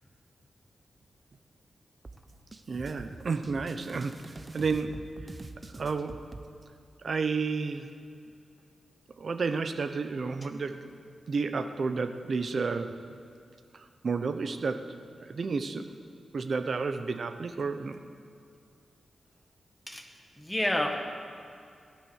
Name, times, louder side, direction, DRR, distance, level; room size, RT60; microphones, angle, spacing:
sound 1, 2.0-6.4, right 2 dB, 30° right, 0.8 m, -44 dB
voice 1, 2.7-5.0 5.7-6.3 7.0-7.9 9.2-10.9 11.3-13.0 13.7-15.0 15.3-15.9 16.3-18.0, right 4 dB, 55° right, 9 dB, 0.9 m, -31 dB
voice 2, 20.4-21.0, left 1 dB, 10° left, 3 dB, 1.8 m, -29 dB
17.5 x 11.0 x 6.5 m, 2.4 s
cardioid pair, 80°, 0 cm